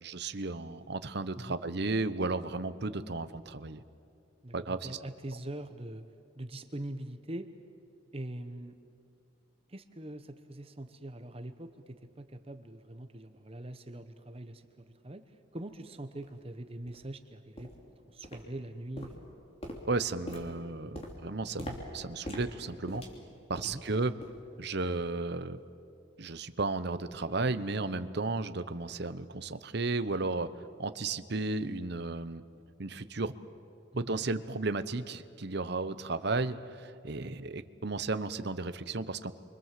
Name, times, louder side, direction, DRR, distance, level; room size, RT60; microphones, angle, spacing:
voice 1, 0.0-3.8 4.5-4.9 19.9-23.0 23.5-24.1 24.6-25.6 26.2-30.5 30.8-32.4 32.8-33.3 34.0-39.3, right 3 dB, 55° right, 12 dB, 0.9 m, -34 dB
voice 2, 4.4-6.0 6.4-7.5 8.1-8.8 9.7-17.7 18.1-19.3 23.6-23.8 33.9-34.1 37.2-37.3, right 1 dB, 30° right, 8 dB, 0.9 m, -43 dB
sound 1, 15.6-15.7 16.2-16.3 16.9-17.0 17.6-17.9 18.2-18.7 19.0-23.9 24.2-24.5 24.8-25.0 25.6-25.7, equal, 30° left, 3.3 m, -44 dB
29.5 x 24.5 x 7.6 m, 2.5 s
head